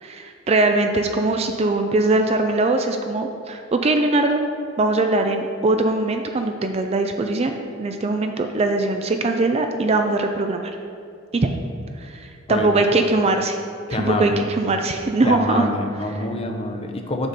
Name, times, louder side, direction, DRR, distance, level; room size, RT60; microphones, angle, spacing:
voice 1, 0.0-4.4 4.8-10.7 11.3-11.5 12.0-13.6 13.9-15.7, right 2 dB, 30° right, 5 dB, 0.4 m, -21 dB
voice 2, 12.5-13.0 13.9-14.4 15.2-17.3, left 1 dB, 30° left, 4 dB, 0.7 m, -26 dB
7.9 x 4.2 x 6.6 m, 2.3 s
head